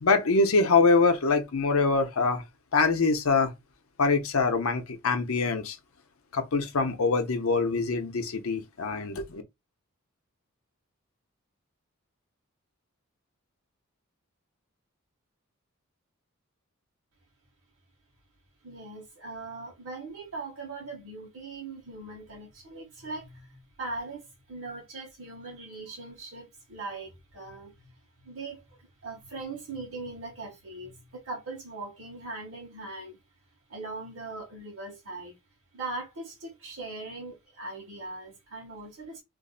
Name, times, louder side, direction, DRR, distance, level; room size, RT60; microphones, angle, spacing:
voice 1, 0.0-2.4 2.7-3.5 4.0-5.8 6.3-9.4, left 4 dB, 70° left, 0.7 m, -24 dB
voice 2, 18.6-33.2 33.7-35.4 35.7-39.2, right 3 dB, 65° right, 0.9 m, -40 dB
2.5 x 2.1 x 3.8 m
head